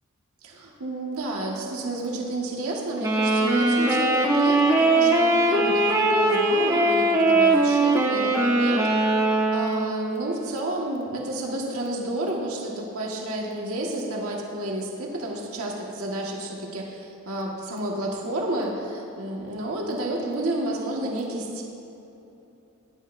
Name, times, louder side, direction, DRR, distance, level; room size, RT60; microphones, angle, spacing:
voice 1, 0.4-21.6, right 1 dB, 75° right, -2 dB, 1.7 m, -31 dB
Wind instrument woodwind instrument, 3.0-10.2, right 2 dB, 15° right, 0.9 m, -21 dB
18.0 x 11.0 x 2.6 m, 3.0 s
head